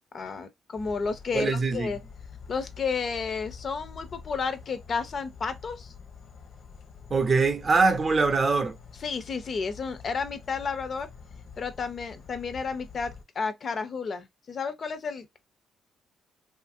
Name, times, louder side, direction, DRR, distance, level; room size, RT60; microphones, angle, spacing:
voice 1, 0.1-2.0 2.5-5.9 9.0-11.1 11.6-15.4, left 5 dB, 45° left, 0.4 m, -32 dB
sound 1, 0.8-13.2, left 6 dB, 75° left, 0.8 m, -47 dB
voice 2, 1.3-1.9 7.1-8.8, right 4 dB, 35° right, 0.5 m, -23 dB
2.8 x 2.5 x 2.5 m
cardioid pair, 90°, 0 cm